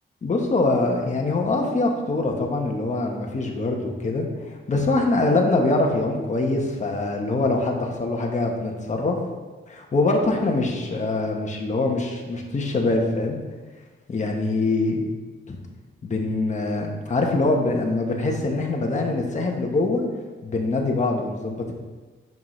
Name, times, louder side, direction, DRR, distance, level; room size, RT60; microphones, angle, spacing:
voice 1, 0.2-9.2 9.7-13.4 14.1-15.0 15.5-15.6 16.0-20.0 20.4-21.7, left 2 dB, 35° left, 1 dB, 1.2 m, -24 dB
8.7 x 5.9 x 3.3 m, 1.3 s
cardioid pair, 105°, 21 cm